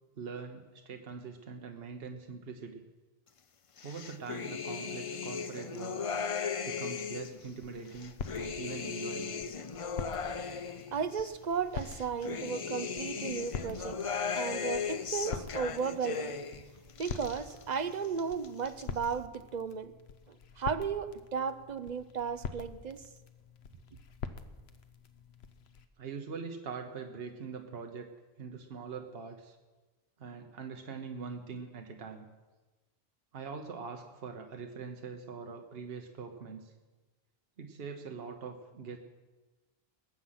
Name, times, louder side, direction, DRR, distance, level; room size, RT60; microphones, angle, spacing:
voice 1, 0.1-2.9 3.8-6.1 6.6-9.4 26.0-28.1 28.4-29.6 30.2-32.3 33.3-36.7 37.6-39.0, right 5 dB, 70° right, 4 dB, 1.2 m, -43 dB
sound 1, 3.8-7.4 7.9-11.3 11.8-16.6 16.9-17.8 18.0-18.8, left 6 dB, 40° left, 0.5 m, -37 dB
sound 2, 7.0-25.9, left 6 dB, 80° left, 1.0 m, -46 dB
voice 2, 10.9-14.0 14.3-16.4 17.0-19.9 20.3-23.0, right 6 dB, 50° right, 11 dB, 0.7 m, -35 dB
20.5 x 7.7 x 5.7 m, 1.2 s
omnidirectional pair, 1.0 m